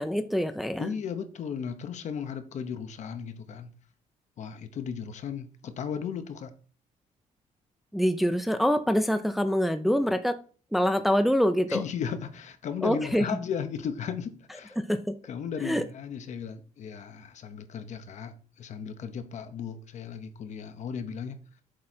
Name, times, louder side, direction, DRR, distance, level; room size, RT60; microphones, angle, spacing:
voice 1, 0.0-0.9 7.9-10.4 10.7-11.8 12.8-13.3 14.9-15.1 15.6-15.8, equal, ahead, 0.5 m, -25 dB
voice 2, 0.8-3.7 4.4-6.5 11.7-14.8 15.2-21.4, left 7 dB, 55° left, 0.9 m, -35 dB
7.5 x 3.7 x 4.4 m
cardioid pair, 115°, 14 cm